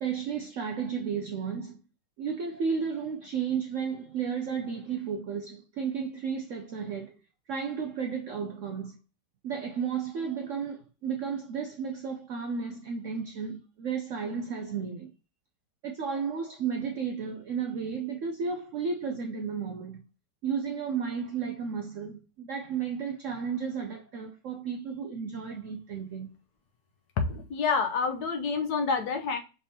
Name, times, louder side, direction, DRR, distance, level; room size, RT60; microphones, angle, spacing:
voice 1, 0.0-1.8 2.2-7.2 7.5-9.0 9.4-15.1 15.8-20.0 20.4-26.3, right 6 dB, 75° right, 0.7 m, -33 dB
voice 2, 27.2-29.4, left 5 dB, 70° left, 1.2 m, -28 dB
5.2 x 3.4 x 2.7 m
omnidirectional pair, 1.9 m